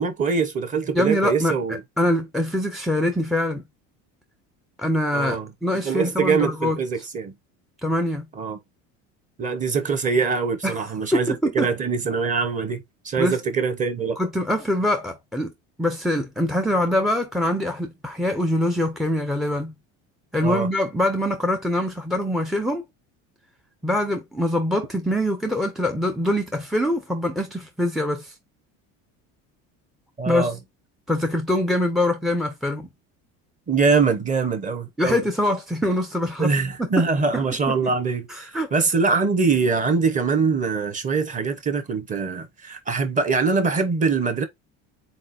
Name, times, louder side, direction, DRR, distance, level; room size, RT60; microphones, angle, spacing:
voice 1, 0.0-1.8 5.1-5.5 5.8-7.3 8.4-8.6 9.4-14.2 20.4-20.7 30.2-30.6 33.7-35.2 36.4-44.4, right 4 dB, 20° right, 0.9 m, -23 dB
voice 2, 0.9-3.6 4.8-6.8 7.8-8.2 10.6-10.8 11.1-11.7 13.2-13.4 14.2-15.5 15.8-19.7 20.3-22.8 23.8-28.3 30.2-30.5 31.1-32.9 35.0-36.9 37.3-37.9 38.3-38.7, left 1 dB, ahead, 0.4 m, -24 dB
4.2 x 4.1 x 2.6 m
cardioid pair, 145°, 34 cm